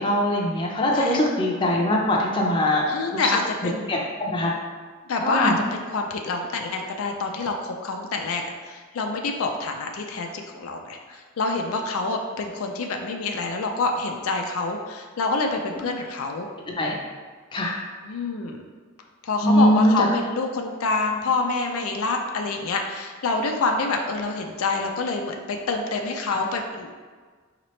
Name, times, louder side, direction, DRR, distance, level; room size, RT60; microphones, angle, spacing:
voice 1, 0.0-2.8 3.1-3.2 3.9-4.5 5.2-5.6 16.8-17.0 17.5-17.8 19.4-20.0 26.3-26.4, left 1 dB, 25° left, -2 dB, 0.6 m, -21 dB
voice 2, 2.9-4.1 5.1-16.5 18.0-18.6 19.2-26.9, left 3 dB, 75° left, 3 dB, 0.4 m, -27 dB
5.1 x 2.9 x 3.1 m, 1.5 s
head